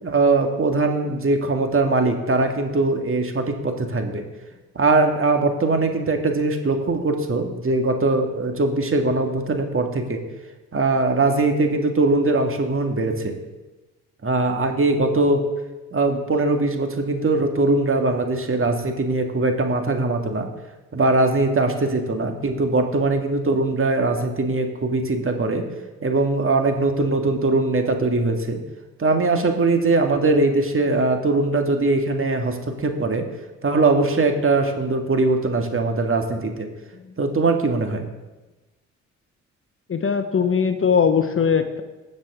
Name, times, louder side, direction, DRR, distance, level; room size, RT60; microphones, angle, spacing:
voice 1, 0.0-4.2 4.8-10.2 10.7-13.4 14.2-15.4 15.9-20.5 20.9-25.6 26.0-28.6 29.0-33.3 33.6-36.7 37.2-38.1, right 3 dB, 35° right, 4 dB, 2.0 m, -21 dB
voice 2, 39.9-41.8, left 6 dB, 35° left, 8 dB, 1.2 m, -20 dB
19.5 x 7.5 x 3.7 m, 1.1 s
hypercardioid pair, 45°, 39 cm